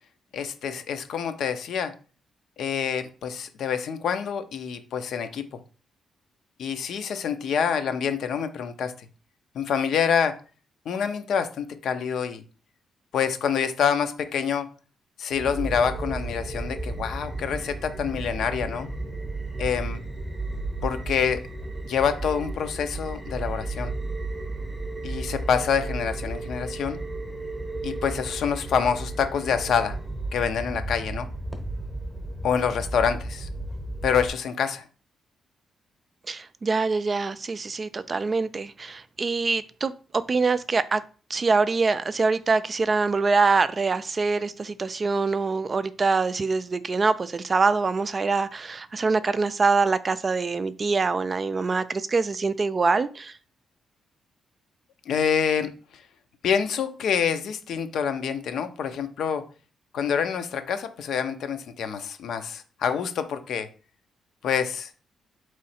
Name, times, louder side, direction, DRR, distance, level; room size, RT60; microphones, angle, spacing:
voice 1, 0.3-1.9 2.6-5.4 6.6-8.9 9.5-10.4 10.9-12.4 13.1-14.7 15.2-18.9 19.6-20.0 20.8-21.4 21.8-23.9 25.0-27.0 27.8-30.0 30.3-31.3 32.4-33.5 34.0-34.8 55.1-55.7 56.4-59.4 59.9-63.7 64.4-64.9, left 7 dB, 70° left, 0.5 m, -26 dB
sound 1, 15.3-34.3, right 2 dB, 5° right, 0.8 m, -33 dB
voice 2, 36.3-39.9 40.3-41.0 41.3-53.3, right 4 dB, 35° right, 0.3 m, -24 dB
3.7 x 3.1 x 4.2 m
cardioid pair, 100°, 0 cm